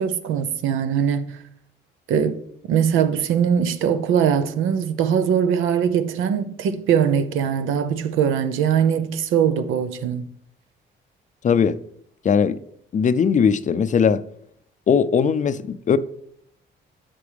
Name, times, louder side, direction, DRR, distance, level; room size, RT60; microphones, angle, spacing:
voice 1, 0.0-1.4 2.1-2.4 2.7-10.3, right 8 dB, 90° right, 0.7 m, -21 dB
voice 2, 11.4-11.8 12.2-12.6 12.9-14.2 14.9-16.0, left 6 dB, 40° left, 0.5 m, -19 dB
11.0 x 5.9 x 3.4 m
cardioid pair, 90°, 20 cm